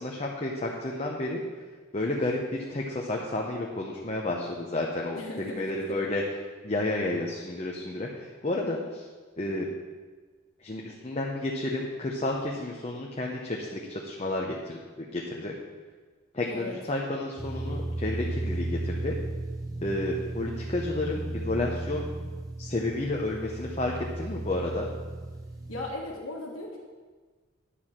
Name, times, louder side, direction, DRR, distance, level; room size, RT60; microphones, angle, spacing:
voice 1, 0.0-1.4 1.9-6.2 6.6-9.1 9.4-9.7 10.6-15.5 16.3-19.1 19.8-22.1 22.6-24.9, left 2 dB, 30° left, -1 dB, 0.8 m, -31 dB
voice 2, 5.2-5.6 5.9-6.0 16.5-16.8 25.7-26.8, left 2 dB, 75° left, -3 dB, 1.6 m, -37 dB
sound 1, 17.4-25.9, right 2 dB, 15° right, 1.0 m, -35 dB
10.0 x 4.7 x 7.3 m, 1.4 s
head